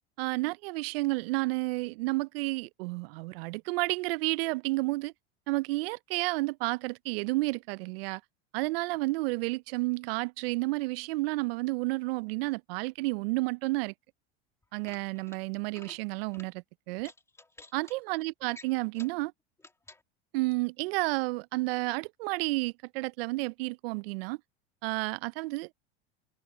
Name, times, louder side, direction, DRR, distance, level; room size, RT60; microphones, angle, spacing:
voice 1, 0.2-5.1 5.5-8.2 8.5-13.9 14.7-17.1 17.7-19.3 20.3-24.4 24.8-25.7, right 23 dB, 65° right, 0.6 m, -31 dB
sound 1, 14.6-15.4 15.7-16.0 16.3-16.5 17.0-17.9 18.5-19.2 19.6-20.0, left 2 dB, 10° left, 2.3 m, -52 dB
hypercardioid pair, 100°, 31 cm